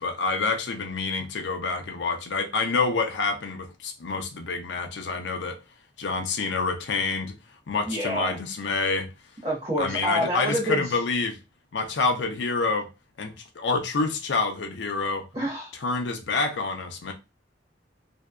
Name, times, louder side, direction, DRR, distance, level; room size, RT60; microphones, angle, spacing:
voice 1, 0.0-5.6 6.0-7.4 7.7-9.1 9.8-11.4 11.7-12.9 13.2-15.2 15.8-17.1, left 4 dB, 75° left, 0.5 m, -27 dB
voice 2, 7.9-8.4 9.4-10.8 15.3-15.7, equal, 30° right, 0.7 m, -27 dB
2.5 x 2.2 x 2.2 m
head